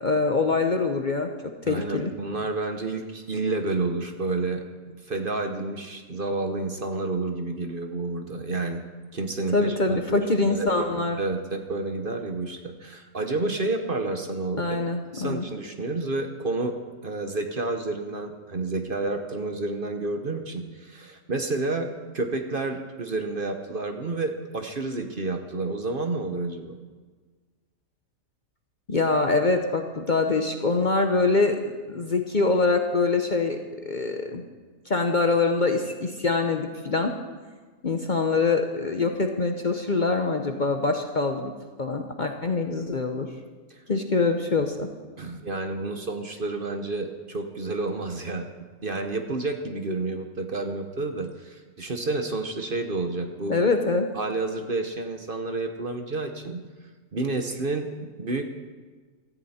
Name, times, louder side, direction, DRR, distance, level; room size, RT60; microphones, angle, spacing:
voice 1, 0.0-1.3 1.7-2.1 9.5-11.2 14.6-15.5 28.9-31.6 31.9-34.4 34.9-37.1 37.8-41.5 41.8-43.3 43.9-44.9 53.5-54.1, left 3 dB, 40° left, 5 dB, 0.9 m, -24 dB
voice 2, 1.6-8.8 9.1-14.7 15.1-16.7 17.0-26.8 43.7-43.8 45.2-48.5 48.8-53.6 54.1-56.6 57.1-58.5, right 3 dB, 40° right, 5 dB, 1.1 m, -30 dB
16.5 x 14.0 x 4.3 m, 1.4 s
omnidirectional pair, 1.5 m